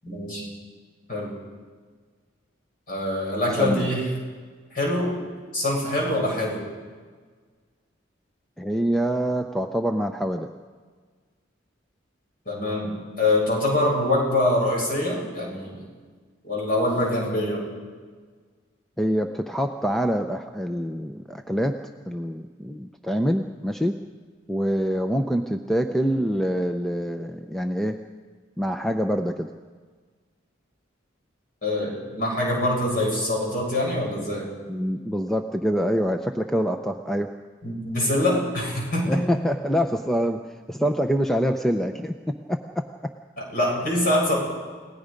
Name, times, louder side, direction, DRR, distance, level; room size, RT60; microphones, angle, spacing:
voice 1, 0.0-0.5 1.1-1.3 2.9-4.1 4.7-5.1 5.5-6.6 12.5-15.8 16.4-17.6 31.6-34.5 37.6-39.3 43.4-44.3, left 1 dB, 45° left, -2 dB, 7.7 m, -24 dB
voice 2, 3.6-3.9 8.6-10.5 19.0-21.8 22.1-24.0 24.5-28.0 28.6-29.5 34.7-37.3 39.1-40.4 40.7-42.2 42.5-42.8, equal, ahead, 5 dB, 0.6 m, -25 dB
29.5 x 18.0 x 5.2 m, 1.5 s
head